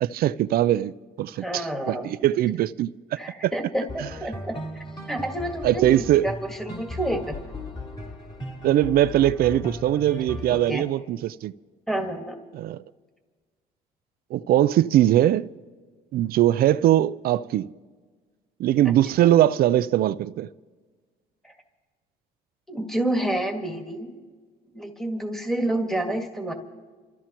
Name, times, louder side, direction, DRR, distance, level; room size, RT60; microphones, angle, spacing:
voice 1, 0.0-0.9 1.2-2.9 3.4-3.5 5.6-6.3 8.6-11.5 12.5-12.8 14.3-15.5 16.1-17.7 18.6-20.5, right 13 dB, 60° right, 0.4 m, -21 dB
voice 2, 1.4-2.1 3.2-4.6 5.1-7.4 10.5-10.9 11.9-12.4 18.9-19.0 19.2-19.3 21.4-21.5 22.7-24.1 24.7-26.5, right 1 dB, ahead, 1.8 m, -29 dB
sound 1, 3.9-10.7, left 1 dB, 30° left, 3.0 m, -37 dB
28.5 x 14.5 x 3.0 m
cardioid pair, 110°, 17 cm